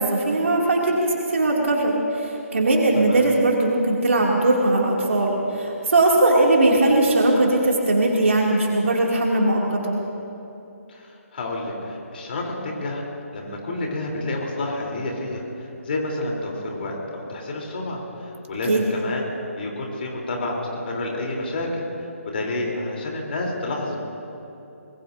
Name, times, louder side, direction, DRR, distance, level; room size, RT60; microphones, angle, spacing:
voice 1, 0.0-10.0 18.7-18.8, right 2 dB, 60° right, -2 dB, 2.7 m, -20 dB
voice 2, 10.9-13.0 13.3-19.3 19.6-21.8 22.3-24.0, left 2 dB, 45° left, -1 dB, 3.6 m, -29 dB
25.0 x 20.5 x 2.7 m, 2.9 s
figure-of-eight pair, 145°, 8 cm